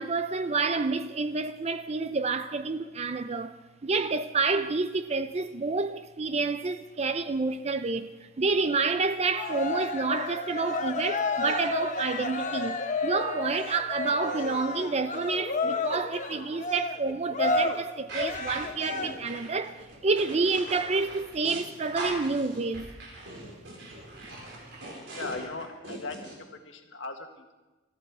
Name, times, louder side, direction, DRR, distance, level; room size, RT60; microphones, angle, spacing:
voice 1, 0.0-3.6 3.8-8.1 8.4-22.9, right 4 dB, 35° right, 0.5 m, -29 dB
Cheering, 9.3-19.4, left 3 dB, 40° left, 1.0 m, -31 dB
sound 1, 18.1-26.3, right 2 dB, 65° right, 4.5 m, -40 dB
voice 2, 25.1-27.5, left 3 dB, 70° left, 1.7 m, -39 dB
21.0 x 13.5 x 4.8 m
head